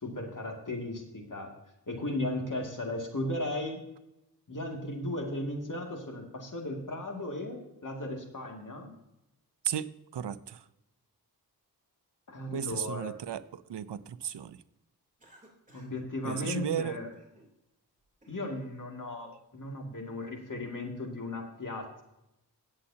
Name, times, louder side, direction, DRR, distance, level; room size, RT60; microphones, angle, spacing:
voice 1, 0.0-1.5 1.9-3.8 4.5-8.9 12.3-13.2 15.7-17.1 18.3-22.0, left 1 dB, 50° left, 2 dB, 2.4 m, -36 dB
voice 2, 9.6-10.6 12.5-14.6 16.2-17.0, right 9 dB, 90° right, 15 dB, 0.6 m, -35 dB
Cough, 15.2-16.0 16.3-16.5 17.1-17.5 18.0-18.7, right 2 dB, 20° right, 3.3 m, -58 dB
17.0 x 7.5 x 2.8 m, 0.88 s
wide cardioid pair, 70°, 40 cm